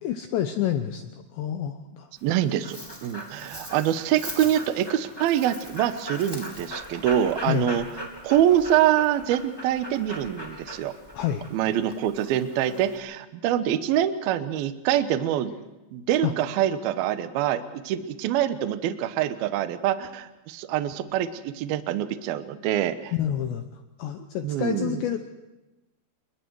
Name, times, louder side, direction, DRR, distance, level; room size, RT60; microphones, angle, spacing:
voice 1, 0.0-2.1 7.5-7.7 11.1-11.4 16.2-16.3 23.1-25.2, left 10 dB, 75° left, 7 dB, 2.8 m, -28 dB
Dog, 2.2-13.0, equal, 5° left, 2.4 m, -39 dB
voice 2, 2.2-7.9 8.2-10.9 11.5-15.5 15.9-23.1 24.4-25.0, right 11 dB, 85° right, 10 dB, 2.1 m, -25 dB
29.5 x 23.0 x 4.7 m, 1.0 s
omnidirectional pair, 6.0 m